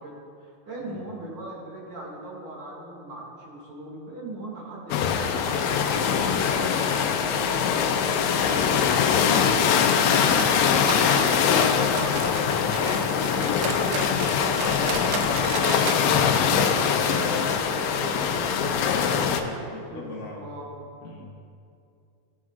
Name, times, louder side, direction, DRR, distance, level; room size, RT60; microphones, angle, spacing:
voice 1, 0.0-18.1 19.9-20.8, right 1 dB, 35° right, -5 dB, 1.8 m, -39 dB
sound 1, 4.9-19.4, left 7 dB, 90° left, 2.9 m, -22 dB
sound 2, 10.2-12.5 12.7-16.1 16.3-16.4 16.8-16.9 17.5-17.6, right 7 dB, 80° right, 2.3 m, -34 dB
voice 2, 17.2-17.6 18.1-20.5 21.0-21.3, left 3 dB, 75° left, -3 dB, 1.9 m, -38 dB
17.5 x 7.6 x 2.4 m, 2.5 s
omnidirectional pair, 4.8 m